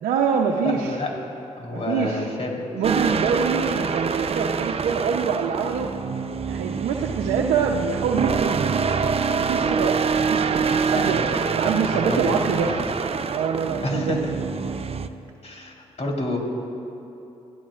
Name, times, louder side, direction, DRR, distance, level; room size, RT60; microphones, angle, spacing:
voice 1, 0.0-1.0 1.7-2.3 2.7-11.2 11.6-12.8 13.3-14.4, right 6 dB, 85° right, 0 dB, 0.8 m, -25 dB
voice 2, 0.6-1.1 1.6-2.5 10.9-12.8 13.8-14.3 15.4-16.4, left 2 dB, 50° left, -1 dB, 3.9 m, -29 dB
sound 1, 2.8-15.1, right 5 dB, 45° right, 0.8 m, -25 dB
28.0 x 16.0 x 2.5 m, 2.8 s
supercardioid pair, 50°, 14 cm